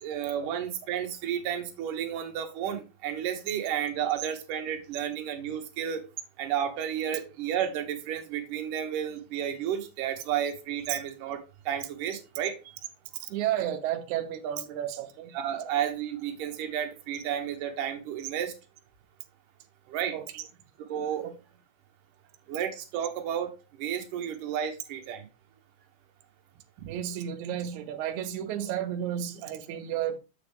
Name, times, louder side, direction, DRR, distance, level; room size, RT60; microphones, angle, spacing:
voice 1, 0.0-6.0 6.4-11.4 11.7-12.6 15.3-18.5 19.9-20.2 20.9-21.3 22.5-23.5 23.8-25.3 26.8-26.9, right 9 dB, 70° right, 2.4 m, -32 dB
voice 2, 13.2-15.4 20.1-20.4 21.2-21.3 26.9-30.2, right 10 dB, 90° right, 1.7 m, -32 dB
7.0 x 6.4 x 3.3 m
omnidirectional pair, 4.5 m